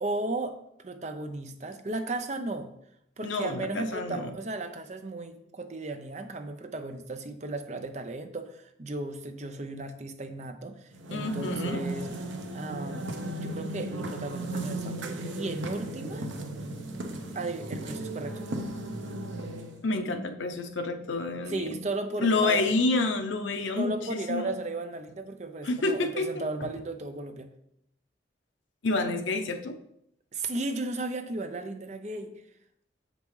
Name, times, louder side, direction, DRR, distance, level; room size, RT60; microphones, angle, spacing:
voice 1, 0.0-2.7 3.2-12.1 12.5-13.1 13.4-16.4 17.3-18.4 21.5-22.7 23.8-27.5 30.3-32.3, right 2 dB, 35° right, 8 dB, 0.5 m, -35 dB
voice 2, 3.2-4.3 11.1-11.8 19.8-21.7 22.2-24.5 25.6-26.3 28.8-29.8, left 3 dB, 85° left, 7 dB, 0.7 m, -28 dB
sound 1, 10.9-19.8, right 1 dB, 80° right, 0.7 m, -36 dB
7.1 x 5.2 x 3.2 m, 0.74 s
head